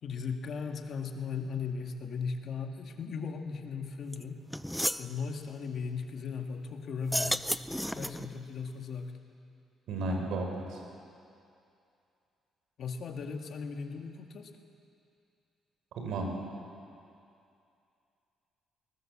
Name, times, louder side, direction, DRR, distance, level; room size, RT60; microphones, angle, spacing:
voice 1, 0.0-4.4 5.0-7.5 7.9-9.1 12.8-14.5, left 5 dB, 60° left, 4 dB, 2.0 m, -37 dB
sound 1, 4.1-4.2 4.5-5.1 7.0-8.3, equal, 5° left, 0.6 m, -32 dB
voice 2, 9.9-10.8 16.0-16.3, right 2 dB, 80° right, 2 dB, 4.6 m, -33 dB
22.0 x 19.5 x 7.5 m, 2.6 s
cardioid pair, 90°, 0 cm